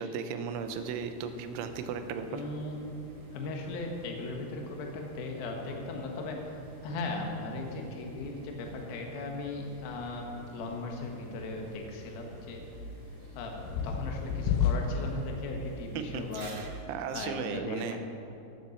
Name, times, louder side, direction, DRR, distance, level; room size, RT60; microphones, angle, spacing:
voice 1, 0.0-2.4 15.9-18.0, right 6 dB, 80° right, 8 dB, 3.1 m, -36 dB
sound 1, 0.5-16.8, right 1 dB, 25° right, 3.5 m, -49 dB
sound 2, 1.3-15.4, left 7 dB, 85° left, 3.4 m, -38 dB
voice 2, 2.3-2.8 3.3-6.5 6.8-12.6 13.4-13.6 13.8-16.5 16.8-18.0, left 2 dB, 60° left, 1 dB, 2.9 m, -37 dB
16.0 x 7.4 x 7.1 m, 2.7 s
omnidirectional pair, 5.8 m